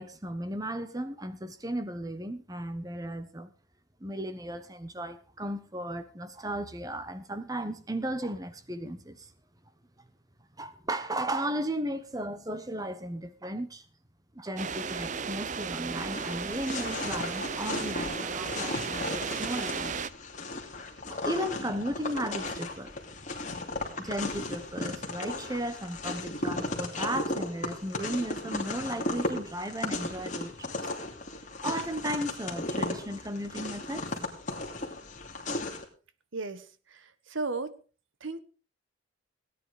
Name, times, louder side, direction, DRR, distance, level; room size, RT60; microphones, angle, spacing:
voice 1, 0.0-3.5 4.0-9.3 10.6-13.8 14.3-20.1 21.1-22.9 24.0-30.9 31.6-34.1 34.5-34.6, right 1 dB, 20° right, 1.2 m, -35 dB
sound 1, 14.6-20.1, right 5 dB, 35° right, 0.6 m, -35 dB
sound 2, 16.1-35.8, left 2 dB, 40° left, 2.8 m, -36 dB
voice 2, 36.3-37.8 38.2-38.4, right 3 dB, 75° right, 1.3 m, -35 dB
17.5 x 10.0 x 5.0 m
head